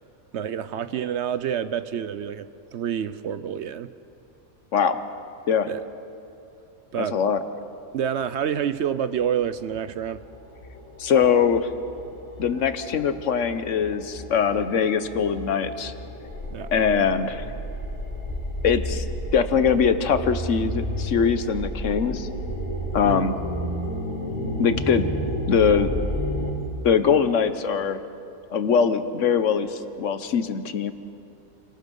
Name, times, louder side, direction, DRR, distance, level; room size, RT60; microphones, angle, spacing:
voice 1, 0.3-2.5 2.7-3.9 5.7-5.8 6.9-7.2 7.9-10.2 16.5-16.7 23.0-23.3, right 8 dB, 60° right, 13 dB, 0.8 m, -28 dB
voice 2, 4.7-5.0 5.5-5.7 7.0-7.4 11.0-11.7 12.4-15.9 16.7-17.4 18.6-19.0 19.3-22.3 22.9-23.4 24.6-25.1 25.5-25.9 26.8-28.0 28.5-30.9, left 6 dB, 60° left, 11 dB, 1.2 m, -22 dB
sound 1, 7.9-8.0 8.2-26.5, left 2 dB, 40° left, 2.7 m, -38 dB
sound 2, 16.2-26.6, right 1 dB, 25° right, 5.5 m, -31 dB
28.5 x 18.5 x 5.4 m, 2.7 s
omnidirectional pair, 1.5 m